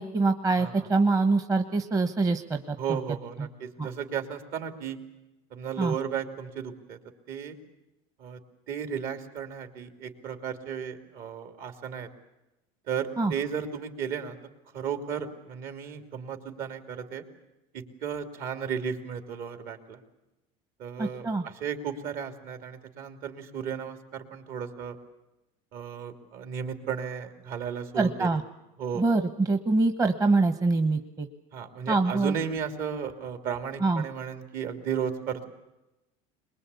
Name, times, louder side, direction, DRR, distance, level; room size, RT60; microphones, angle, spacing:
voice 1, 0.0-2.8 3.4-3.5 3.8-3.9 5.8-5.9 13.2-13.3 21.0-21.4 28.0-28.4 29.0-31.3 31.9-32.3 33.8-34.0, right 3 dB, 20° right, 7 dB, 1.1 m, -24 dB
voice 2, 0.6-0.9 2.8-5.0 5.5-7.0 7.3-7.6 8.2-8.4 8.7-12.1 12.9-14.4 14.7-17.2 17.7-20.0 20.8-25.0 25.7-28.4 28.8-29.0 31.5-35.5, right 7 dB, 60° right, 6 dB, 2.9 m, -34 dB
23.0 x 21.5 x 8.4 m, 0.95 s
cardioid pair, 125°, 17 cm